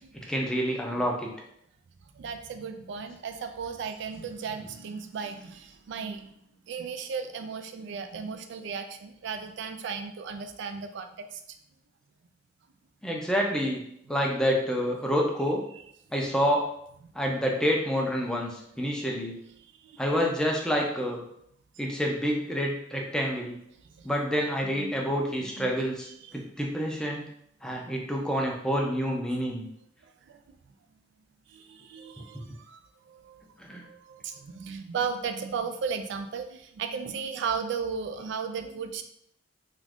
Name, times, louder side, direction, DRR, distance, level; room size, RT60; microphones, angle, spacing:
voice 1, 0.3-1.3 13.0-13.8 14.1-15.6 16.1-16.7 17.1-19.4 20.0-21.2 21.8-23.6 24.0-27.2 27.6-29.7 33.6-33.8, equal, 5° left, -1 dB, 0.4 m, -28 dB
voice 2, 2.1-6.4 6.7-11.4 19.8-20.0 23.9-24.1 24.7-25.1 25.4-25.7 26.3-26.4 30.0-30.6 31.5-32.8 33.0-33.4 33.7-39.0, right 6 dB, 65° right, 8 dB, 0.3 m, -36 dB
2.5 x 2.4 x 3.4 m, 0.72 s
head